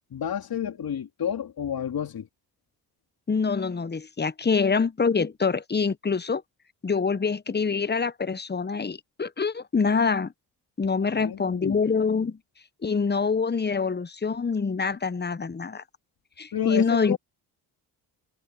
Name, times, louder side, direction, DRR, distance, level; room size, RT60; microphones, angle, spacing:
voice 1, 0.1-2.3 11.2-11.8 16.5-17.2, left 9 dB, 50° left, 2.8 m, -30 dB
voice 2, 3.3-6.4 6.8-10.3 10.8-12.4 12.8-15.8 16.4-17.2, left 5 dB, 20° left, 1.2 m, -25 dB
hypercardioid pair, 50°, 48 cm